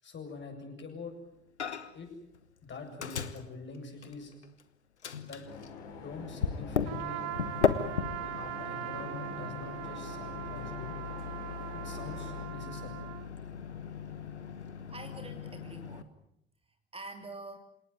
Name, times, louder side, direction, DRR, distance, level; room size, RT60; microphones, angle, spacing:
voice 1, 0.0-1.2 1.9-2.2 2.6-4.4 5.2-5.4 6.0-7.3 8.2-11.0 11.7-13.0, left 3 dB, 35° left, 4 dB, 7.9 m, -45 dB
Microwave oven, 1.6-2.1 2.3-4.6 5.0-16.0, left 6 dB, 80° left, 1.3 m, -37 dB
sound 1, 5.4-12.5, left 5 dB, 65° left, 6.7 m, -48 dB
Trumpet, 6.8-13.3, right 14 dB, 50° right, 1.7 m, -41 dB
voice 2, 14.9-16.1 16.9-17.6, right 2 dB, 15° right, 5 dB, 3.0 m, -45 dB
27.5 x 18.5 x 9.4 m, 0.76 s
figure-of-eight pair, 60°, 33 cm